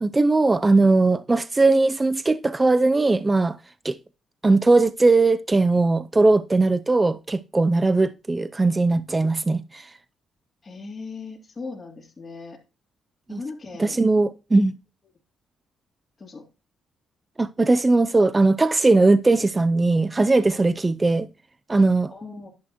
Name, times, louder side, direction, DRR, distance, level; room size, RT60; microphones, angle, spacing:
voice 1, 0.0-3.6 3.8-4.0 4.4-9.9 13.3-13.4 13.8-14.7 17.4-21.3 21.7-22.1, right 3 dB, 20° right, 0.5 m, -19 dB
voice 2, 10.6-12.6 13.3-14.0 16.2-16.4 22.1-22.5, left 4 dB, 30° left, 2.9 m, -38 dB
11.0 x 8.6 x 3.0 m
cardioid pair, 90°, 0 cm